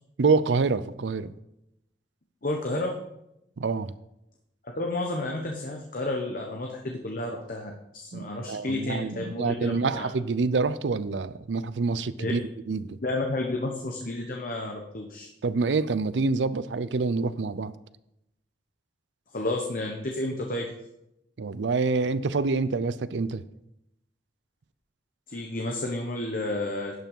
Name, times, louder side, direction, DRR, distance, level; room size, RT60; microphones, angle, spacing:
voice 1, 0.2-1.3 3.6-3.9 8.1-12.4 12.7-13.0 15.4-17.7 21.4-23.4, right 4 dB, 80° right, 0.5 m, -26 dB
voice 2, 2.4-3.0 4.8-10.1 12.2-12.3 13.0-15.3 19.3-20.7 25.3-26.9, left 2 dB, 50° left, 1.1 m, -31 dB
11.5 x 5.9 x 5.5 m
head